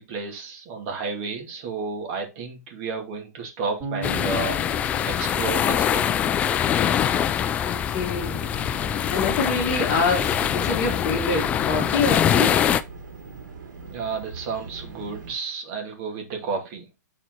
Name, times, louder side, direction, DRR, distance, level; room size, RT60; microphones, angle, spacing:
voice 1, 0.0-6.1 13.9-16.9, right 4 dB, 35° right, 2.3 m, -32 dB
Bass guitar, 3.8-6.8, right 2 dB, 10° right, 3.4 m, -38 dB
sound 1, 4.0-12.8, left 9 dB, 15° left, 0.3 m, -23 dB
voice 2, 7.6-8.4 9.1-12.7, left 3 dB, 30° left, 2.0 m, -26 dB
sound 2, 7.9-15.3, right 4 dB, 90° right, 3.1 m, -41 dB
7.4 x 4.4 x 4.4 m
hypercardioid pair, 155°, 10 cm